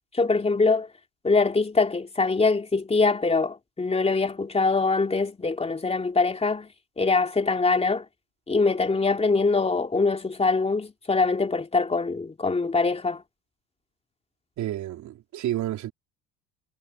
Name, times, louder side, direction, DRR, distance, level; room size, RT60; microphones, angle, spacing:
voice 1, 0.1-0.9 1.2-6.7 7.0-8.0 8.5-13.2, left 3 dB, 20° left, 2.8 m, -23 dB
voice 2, 14.6-15.9, right 13 dB, 55° right, 4.3 m, -30 dB
hypercardioid pair, 70°, 33 cm